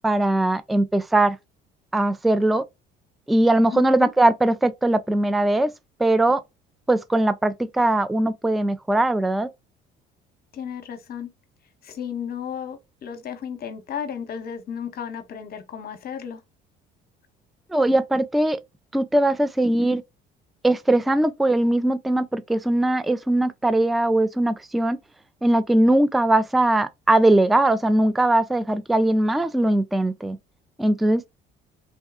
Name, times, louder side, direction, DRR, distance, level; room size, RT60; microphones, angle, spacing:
voice 1, 0.0-1.4 1.9-2.6 3.3-5.7 6.0-6.4 6.9-9.5 17.7-18.6 18.9-20.0 20.6-25.0 25.4-30.4 30.8-31.3, right 1 dB, ahead, 0.3 m, -20 dB
voice 2, 3.7-4.1 10.5-11.3 11.8-16.4, left 8 dB, 45° left, 0.9 m, -34 dB
3.5 x 2.2 x 2.2 m
supercardioid pair, 75°, 21 cm